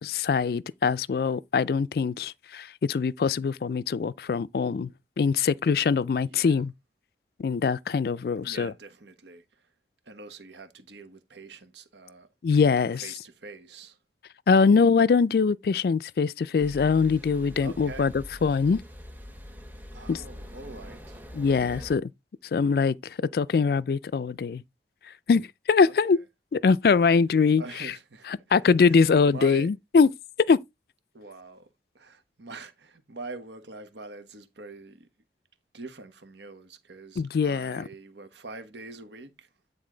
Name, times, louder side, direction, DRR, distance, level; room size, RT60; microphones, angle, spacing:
voice 1, 0.0-4.9 5.2-6.7 7.4-8.7 12.4-13.0 14.5-18.1 18.4-18.8 20.1-20.2 21.3-22.0 22.5-23.0 23.3-24.6 25.3-26.2 26.5-27.6 28.5-30.1 30.5-30.6 37.2-37.8, left 5 dB, 55° left, 0.3 m, -22 dB
voice 2, 6.2-6.6 8.4-9.7 10.0-12.3 12.9-14.0 17.6-18.1 19.9-21.2 21.6-22.0 25.8-26.2 27.6-28.3 28.8-29.7 31.1-31.7 31.9-35.1 35.7-39.5, right 3 dB, 80° right, 1.2 m, -44 dB
sound 1, 16.6-22.0, equal, 10° right, 1.3 m, -43 dB
9.6 x 3.9 x 3.8 m
head